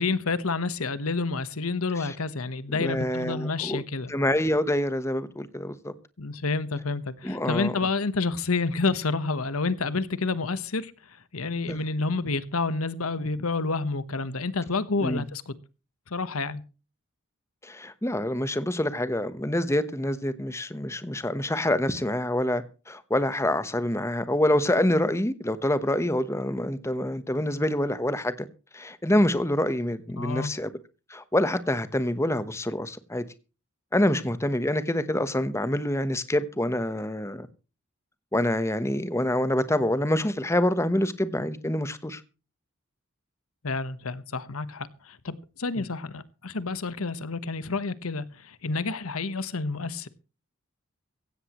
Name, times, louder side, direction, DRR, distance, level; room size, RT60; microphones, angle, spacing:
voice 1, 0.0-4.1 6.2-10.9 11.3-15.5 16.1-16.6 30.2-30.5 43.6-50.1, left 3 dB, 80° left, 1.2 m, -29 dB
voice 2, 2.7-3.8 4.1-5.9 7.2-7.7 11.7-11.8 15.0-15.2 17.6-28.5 28.7-30.7 31.1-33.2 33.9-37.5 38.3-42.2 45.8-45.9, left 1 dB, 15° left, 1.0 m, -26 dB
16.5 x 16.0 x 3.1 m
head